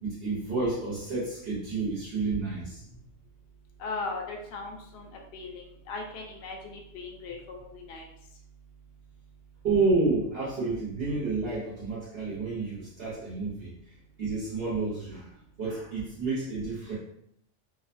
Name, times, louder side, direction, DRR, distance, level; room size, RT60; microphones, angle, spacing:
voice 1, 0.0-2.8 9.6-13.7 14.2-15.3 15.6-16.9, right 3 dB, 55° right, -8 dB, 1.1 m, -30 dB
voice 2, 3.8-8.1, left 3 dB, 65° left, 0 dB, 0.7 m, -38 dB
2.6 x 2.2 x 2.5 m, 0.73 s
omnidirectional pair, 1.3 m